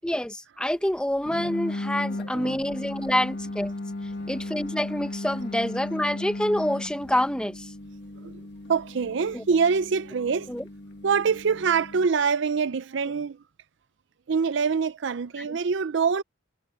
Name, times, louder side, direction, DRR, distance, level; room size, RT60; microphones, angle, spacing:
voice 1, 0.0-3.7 4.3-7.7 9.3-9.4 10.5-10.6 15.4-15.6, left 1 dB, 5° left, 0.9 m, -27 dB
sound 1, 1.3-12.1, left 2 dB, 55° left, 1.7 m, -36 dB
voice 2, 8.7-10.5 11.0-13.4 14.3-16.2, right 5 dB, 60° right, 0.4 m, -25 dB
head